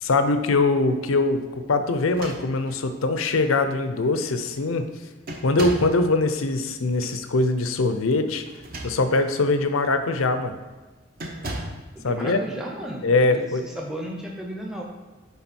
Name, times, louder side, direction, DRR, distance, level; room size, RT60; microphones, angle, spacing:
voice 1, 0.0-4.9 5.4-8.4 8.8-10.5 12.0-12.4 13.0-13.6, left 3 dB, 85° left, 9 dB, 0.6 m, -22 dB
sound 1, 2.0-2.9 3.8-3.9 4.2-4.6 5.3-6.0 8.4-9.3 9.9-10.1 11.2-11.9, right 1 dB, 45° right, 0.9 m, -36 dB
voice 2, 11.9-14.8, right 1 dB, 5° right, 0 dB, 0.7 m, -34 dB
8.9 x 3.6 x 4.2 m, 1.3 s
head